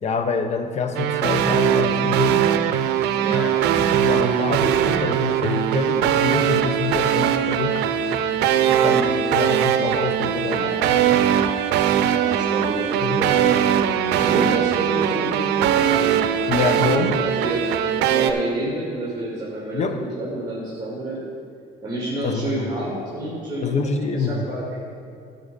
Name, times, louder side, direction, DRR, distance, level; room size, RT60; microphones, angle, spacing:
voice 1, 0.0-2.5 4.0-7.9 8.6-10.6 10.9-11.1 13.0-13.2 16.5-17.2 19.7-20.0 22.2-22.7 23.6-24.4, left 4 dB, 40° left, 7 dB, 0.9 m, -26 dB
sound 1, 1.0-18.3, right 9 dB, 85° right, 0.6 m, -20 dB
voice 2, 3.2-3.5 10.5-11.1 12.2-13.5 14.2-16.2 16.5-17.6 18.0-19.8 20.2-21.2 21.8-24.7, right 1 dB, 20° right, -6 dB, 2.4 m, -29 dB
12.0 x 5.7 x 5.3 m, 2.5 s
cardioid pair, 110°, 17 cm